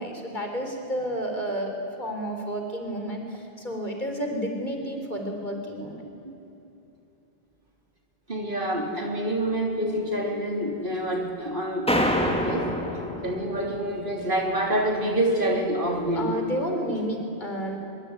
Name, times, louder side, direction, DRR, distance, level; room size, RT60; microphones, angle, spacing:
voice 1, 0.0-1.7 2.0-6.0 16.1-17.8, equal, 50° left, 3 dB, 4.1 m, -31 dB
voice 2, 8.3-12.7 13.2-16.4, right 1 dB, 55° right, 1 dB, 3.5 m, -27 dB
sound 1, 11.9-13.9, equal, 5° left, 2.6 m, -26 dB
23.5 x 23.0 x 9.7 m, 2.9 s
omnidirectional pair, 1.1 m